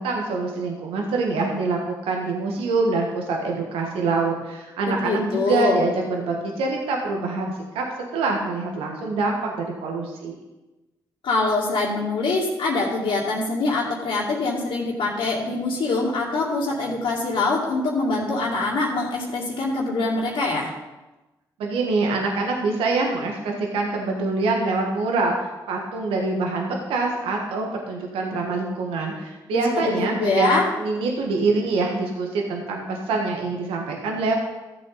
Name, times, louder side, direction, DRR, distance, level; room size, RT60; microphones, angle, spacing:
voice 1, 0.0-7.8 8.1-10.3 21.6-25.4 25.7-30.5 30.8-34.3, right 3 dB, 80° right, 0 dB, 1.5 m, -25 dB
voice 2, 4.9-5.8 11.2-20.7 29.5-30.6, left 3 dB, 70° left, -8 dB, 2.3 m, -24 dB
14.0 x 7.8 x 3.9 m, 1.1 s
supercardioid pair, 50°, 9 cm